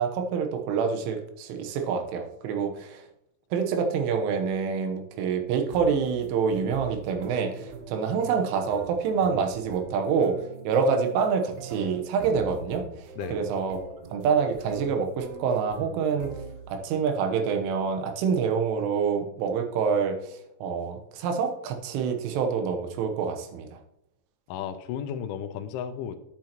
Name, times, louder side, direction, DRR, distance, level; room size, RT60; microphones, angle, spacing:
voice 1, 0.0-3.0 3.5-10.4 10.6-12.8 13.3-13.8 14.1-16.3 16.7-23.7, right 6 dB, 90° right, 5 dB, 3.5 m, -26 dB
sound 1, 5.7-16.9, right 4 dB, 75° right, 2.6 m, -42 dB
voice 2, 24.5-26.2, left 9 dB, 85° left, 10 dB, 3.1 m, -34 dB
10.0 x 9.2 x 3.0 m, 0.78 s
omnidirectional pair, 5.5 m